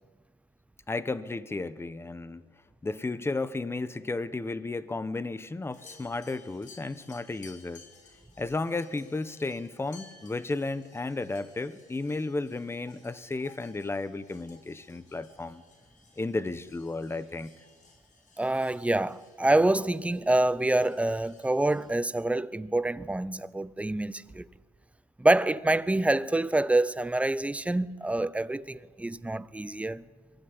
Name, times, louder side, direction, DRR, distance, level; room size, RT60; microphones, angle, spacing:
voice 1, 0.9-2.5 2.8-7.9 8.4-15.6 16.2-17.5, left 3 dB, 15° left, 1.1 m, -33 dB
sound 1, 5.7-22.0, left 4 dB, 45° left, 5.6 m, -57 dB
voice 2, 18.4-24.5 25.2-30.0, right 2 dB, 10° right, 0.7 m, -26 dB
23.5 x 16.0 x 9.9 m
cardioid pair, 110°, 17 cm